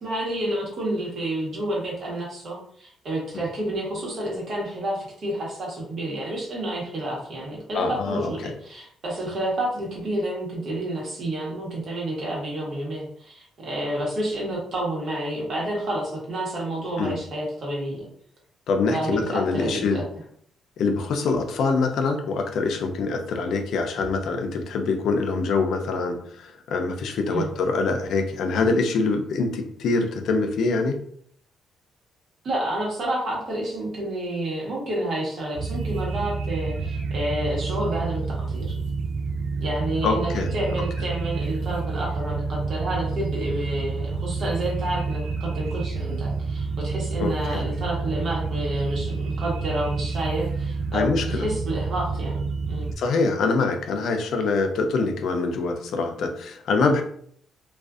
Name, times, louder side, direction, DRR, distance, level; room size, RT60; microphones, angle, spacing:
voice 1, 0.0-18.1 18.9-20.0 27.3-27.5 32.4-38.8 39.6-51.0 51.3-52.9, right 1 dB, 55° right, -3 dB, 1.2 m, -29 dB
voice 2, 7.7-8.3 17.0-17.2 18.7-20.0 20.8-31.0 40.0-40.5 47.2-47.6 50.9-51.4 53.0-57.0, left 4 dB, 70° left, 5 dB, 0.4 m, -24 dB
sound 1, 35.5-52.9, right 4 dB, 70° right, 0.3 m, -29 dB
2.4 x 2.3 x 2.4 m, 0.62 s
cardioid pair, 90°, 0 cm